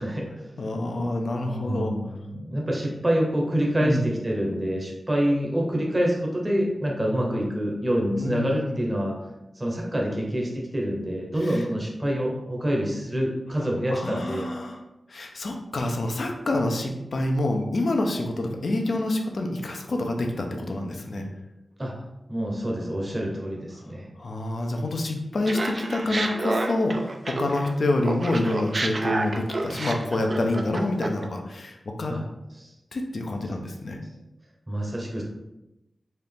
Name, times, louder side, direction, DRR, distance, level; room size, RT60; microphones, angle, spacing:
voice 1, 0.0-0.5 1.4-9.2 9.5-14.4 21.8-21.9 22.3-24.1 32.1-32.2 32.6-32.7 34.7-35.2, equal, 30° right, -2 dB, 0.9 m, -26 dB
voice 2, 0.6-1.9 3.8-4.1 8.2-8.8 11.4-11.6 13.9-14.8 15.1-21.3 24.2-32.1 32.9-34.0, left 2 dB, 70° left, 2 dB, 0.6 m, -27 dB
Laughter, 25.5-27.7 28.0-31.2, right 2 dB, 55° right, 0.5 m, -29 dB
4.2 x 2.5 x 3.5 m, 0.95 s
cardioid pair, 50°, 0 cm